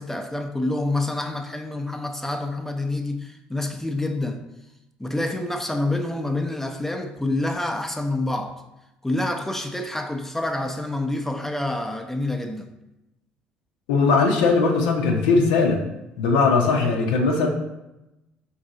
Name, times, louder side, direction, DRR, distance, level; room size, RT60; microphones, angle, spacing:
voice 1, 0.0-4.4 5.0-8.6 9.0-12.7, left 2 dB, 5° left, 0.5 m, -27 dB
voice 2, 13.9-15.8 16.2-17.5, left 4 dB, 85° left, 0.5 m, -19 dB
3.9 x 2.6 x 3.8 m
hypercardioid pair, 65°, 4 cm